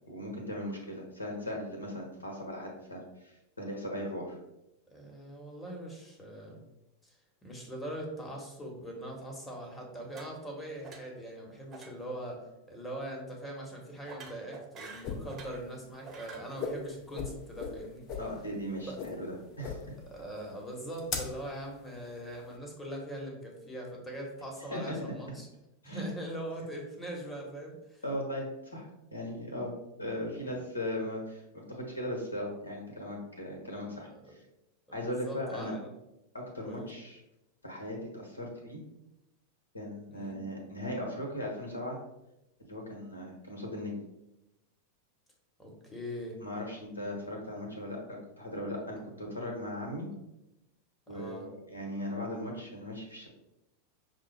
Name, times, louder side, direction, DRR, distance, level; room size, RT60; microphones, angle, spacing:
voice 1, 0.1-4.4 18.2-19.8 24.7-25.0 25.8-26.0 28.0-29.7 30.0-34.4 34.9-35.7 36.3-37.2 37.6-38.8 39.7-42.0 42.6-44.0 46.4-50.1 51.1-53.3, left 1 dB, 75° left, 1 dB, 1.0 m, -38 dB
voice 2, 4.9-6.6 7.0-7.2 7.4-12.4 12.7-18.2 18.8-19.0 20.1-25.5 25.8-28.0 30.1-30.6 34.2-34.4 34.9-35.9 36.6-36.9 40.1-40.4 45.6-46.4 51.1-51.4, right 1 dB, 10° left, 0 dB, 1.1 m, -42 dB
sound 1, 10.1-10.6 10.8-11.3 11.7-11.9 12.2-12.5 14.0-15.6 16.0-16.5, right 5 dB, 30° right, 0.8 m, -48 dB
sound 2, 14.8-22.6, left 5 dB, 35° left, 0.6 m, -40 dB
5.9 x 2.0 x 3.2 m, 0.90 s
figure-of-eight pair, 90°, 0 cm